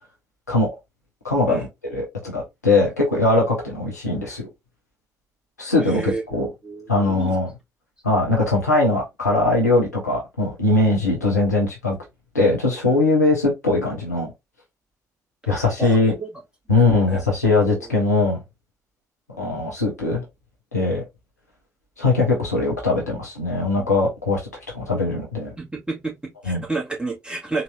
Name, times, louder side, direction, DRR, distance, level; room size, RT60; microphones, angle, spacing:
voice 1, 1.2-4.5 5.6-6.5 6.9-7.5 8.0-12.0 12.3-14.3 15.5-16.1 16.7-18.4 19.4-20.2 20.7-21.0 22.0-24.4 24.7-25.5 26.4-26.6, left 2 dB, 85° left, 0.9 m, -20 dB
voice 2, 5.8-6.2 6.6-7.3 15.5-16.3 16.7-17.9 23.7-23.9 25.6-27.6, right 3 dB, 10° right, 2.0 m, -31 dB
4.0 x 2.8 x 2.3 m
figure-of-eight pair, 40°, 9 cm